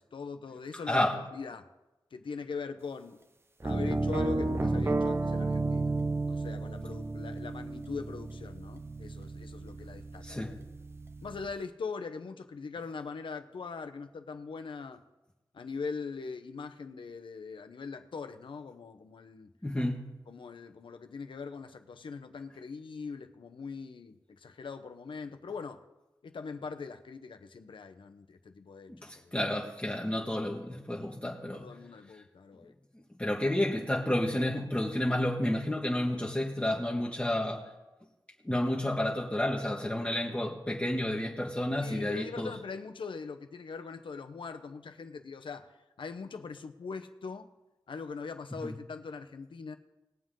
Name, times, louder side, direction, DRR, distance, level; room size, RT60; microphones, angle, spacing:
voice 1, 0.0-1.7 2.1-3.2 3.6-5.9 6.3-10.5 11.2-15.0 15.5-19.5 20.3-25.8 26.2-29.4 31.5-32.7 41.8-45.7 46.0-47.5 47.9-49.8, left 5 dB, 90° left, 7 dB, 0.9 m, -41 dB
voice 2, 0.9-1.2 10.2-10.6 19.6-20.1 28.9-31.7 33.2-37.7 38.4-42.5 48.6-48.7, left 1 dB, 15° left, -2 dB, 1.5 m, -31 dB
sound 1, 3.6-11.5, right 2 dB, 30° right, 0.7 m, -32 dB
20.0 x 7.5 x 3.8 m, 1.0 s
wide cardioid pair, 60°, 8 cm